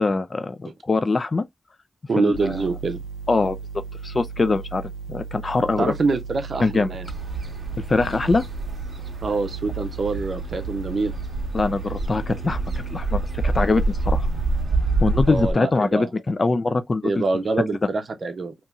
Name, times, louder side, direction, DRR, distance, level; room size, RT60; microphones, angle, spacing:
voice 1, 0.0-1.4 2.2-2.6 3.3-3.6 4.0-5.9 6.6-7.0 7.9-8.5 11.5-12.6 12.9-14.3 15.0-17.2, left 3 dB, 35° left, 0.3 m, -23 dB
voice 2, 2.1-3.0 5.8-7.1 9.2-11.2 15.3-16.1 17.0-18.5, right 3 dB, 50° right, 0.6 m, -25 dB
sound 1, 2.3-14.7, right 5 dB, 80° left, 1.2 m, -36 dB
sound 2, 7.1-15.5, right 2 dB, 30° right, 1.1 m, -27 dB
2.9 x 2.7 x 3.4 m
wide cardioid pair, 115°, 0 cm